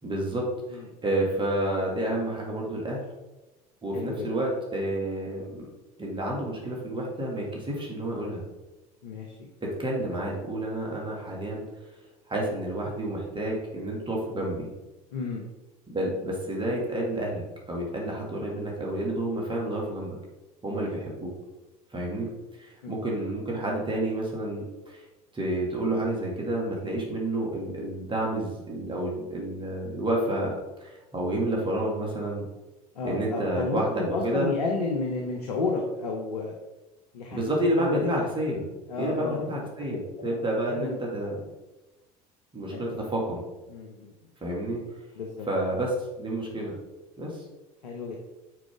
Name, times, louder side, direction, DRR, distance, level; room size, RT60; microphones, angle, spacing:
voice 1, 0.0-3.0 3.8-5.7 6.0-8.4 9.6-11.7 12.3-14.7 15.9-20.1 20.6-21.3 21.9-25.0 25.3-30.5 30.8-32.5 33.0-34.5 37.3-38.6 39.0-41.4 42.5-43.4 44.4-44.9 45.5-46.7 47.2-47.4, right 1 dB, 25° right, -2 dB, 2.7 m, -30 dB
voice 2, 3.9-4.3 9.0-9.5 15.1-15.5 20.7-20.9 22.8-23.1 32.9-36.5 37.1-37.4 37.8-38.0 38.9-39.7 40.8-41.0 42.7-42.8 43.7-44.1 45.1-45.5 47.8-48.2, left 3 dB, 85° left, 0 dB, 1.1 m, -32 dB
9.3 x 5.1 x 3.8 m, 1.1 s
hypercardioid pair, 70°, 20 cm